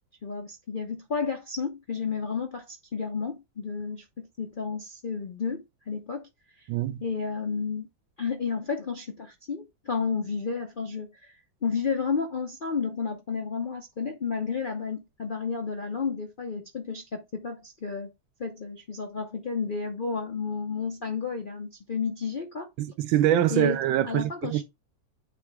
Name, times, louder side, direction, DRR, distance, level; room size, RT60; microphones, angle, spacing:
voice 1, 0.2-6.3 6.6-6.7 7.0-7.9 8.2-11.4 11.6-18.1 18.4-22.7 23.5-23.8 24.1-24.6, left 5 dB, 65° left, 0.5 m, -32 dB
voice 2, 6.7-7.0 22.8-24.6, right 12 dB, 85° right, 1.5 m, -24 dB
8.0 x 3.3 x 4.7 m
omnidirectional pair, 2.1 m